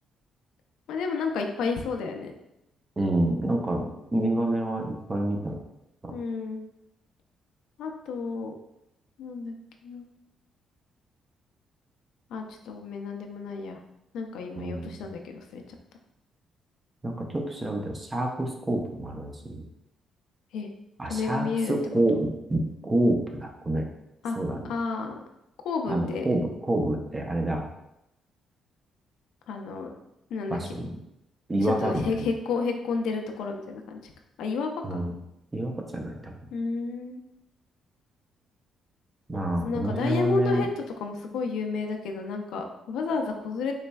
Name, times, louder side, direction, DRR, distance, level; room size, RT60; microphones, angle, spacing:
voice 1, 0.9-2.3 6.1-6.7 7.8-8.6 9.2-9.5 9.8-10.1 12.3-13.8 14.1-15.6 20.5-20.7 21.1-21.7 22.1-22.2 24.2-24.4 24.6-25.1 25.6-26.3 29.5-29.9 30.3-30.7 31.6-34.1 34.4-35.0 36.5-37.2 39.6-43.7, left 4 dB, 80° left, 4 dB, 0.4 m, -31 dB
voice 2, 3.0-5.6 6.0-6.1 14.6-15.0 17.0-19.6 21.0-23.9 24.4-24.7 25.9-27.7 30.5-30.9 31.5-32.3 34.8-35.1 35.5-36.3 39.3-40.6, right 1 dB, 25° right, 2 dB, 0.6 m, -28 dB
4.1 x 3.1 x 2.2 m, 0.86 s
cardioid pair, 90°, 0 cm